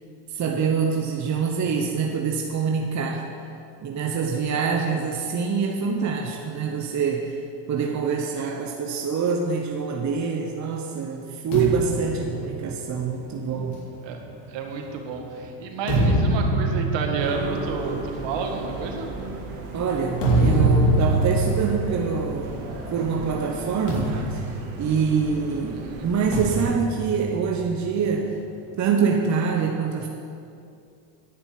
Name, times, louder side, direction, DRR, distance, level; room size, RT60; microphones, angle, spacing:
voice 1, 0.3-3.3 3.8-13.8 19.7-22.7 22.9-28.5 28.8-30.1, right 5 dB, 35° right, 2 dB, 1.0 m, -25 dB
sound 1, 11.5-15.1 15.6-23.1 23.3-23.5 23.9-25.5 26.3-28.1, right 2 dB, 55° left, 3.3 m, -25 dB
voice 2, 14.5-19.1 25.7-26.0, right 4 dB, 60° right, 3 dB, 1.9 m, -31 dB
sound 2, 17.2-26.6, right 2 dB, 80° right, 2.3 m, -36 dB
10.5 x 6.0 x 8.8 m, 2.6 s
supercardioid pair, 105°, 50 cm